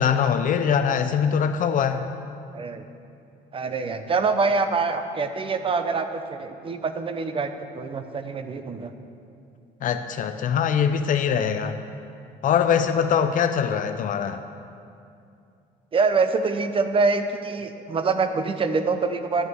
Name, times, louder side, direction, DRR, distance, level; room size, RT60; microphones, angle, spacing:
voice 1, 0.0-2.1 9.8-11.8 12.4-14.4, left 7 dB, 50° left, 8 dB, 0.5 m, -22 dB
voice 2, 2.5-2.8 3.5-8.9 15.9-19.5, right 4 dB, 30° right, 9 dB, 0.8 m, -25 dB
11.0 x 9.3 x 6.2 m, 2.5 s
cardioid pair, 110°, 17 cm